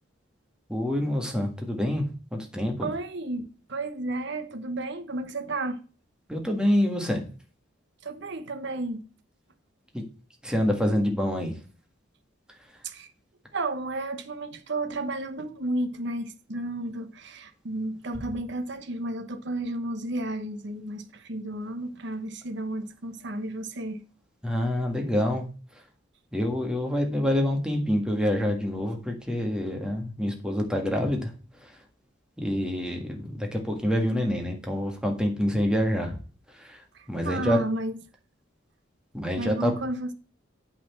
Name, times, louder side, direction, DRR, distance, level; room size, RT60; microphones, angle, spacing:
voice 1, 0.7-2.1 2.3-2.9 6.3-7.2 9.9-10.0 10.4-11.6 24.4-25.4 26.3-31.3 31.6-31.8 32.4-36.2 36.5-37.6 39.1-39.7, left 1 dB, 5° right, 1.7 m, -27 dB
voice 2, 2.8-5.8 8.0-9.0 12.8-13.1 13.5-24.0 36.9-38.0 39.4-40.1, right 2 dB, 60° right, 1.0 m, -32 dB
8.7 x 4.3 x 7.0 m
head